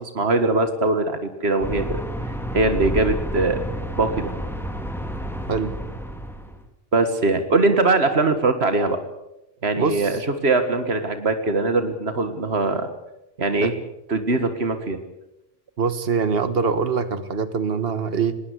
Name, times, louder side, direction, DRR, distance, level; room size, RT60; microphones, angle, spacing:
voice 1, 0.0-2.0 2.5-3.6 4.0-4.3 6.9-9.0 9.6-12.9 13.4-13.7 14.1-15.0, right 3 dB, 90° right, 8 dB, 2.0 m, -21 dB
sound 1, 1.6-6.6, equal, ahead, 2.1 m, -30 dB
voice 2, 9.8-10.2 13.6-13.7 15.8-18.4, right 5 dB, 70° right, 12 dB, 1.6 m, -23 dB
20.5 x 19.0 x 8.2 m, 0.91 s
omnidirectional pair, 1.0 m